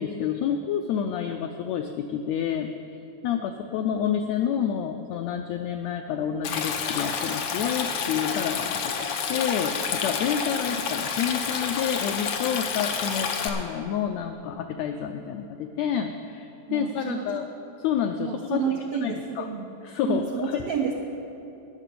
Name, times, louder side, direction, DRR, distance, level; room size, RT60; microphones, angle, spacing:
voice 1, 0.0-2.7 3.2-17.5 17.8-18.6 19.0-19.4 19.8-20.6, left 8 dB, 90° left, 5 dB, 1.5 m, -29 dB
Stream, 6.4-13.5, left 6 dB, 75° left, 1.3 m, -29 dB
voice 2, 16.7-17.4 18.2-19.7 20.0-20.9, right 7 dB, 85° right, 2 dB, 1.3 m, -30 dB
11.0 x 6.7 x 9.2 m, 2.9 s
omnidirectional pair, 3.6 m